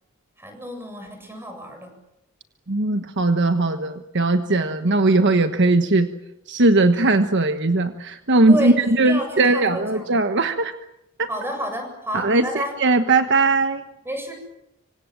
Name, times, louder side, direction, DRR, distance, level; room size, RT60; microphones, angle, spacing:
voice 1, 0.4-1.9 8.5-10.1 11.3-12.8 14.0-14.3, equal, 10° right, 5 dB, 7.7 m, -30 dB
voice 2, 2.7-6.1 6.5-10.7 11.2-11.3 12.1-13.8, right 2 dB, 60° right, 8 dB, 1.3 m, -19 dB
26.5 x 25.5 x 7.7 m, 0.85 s
head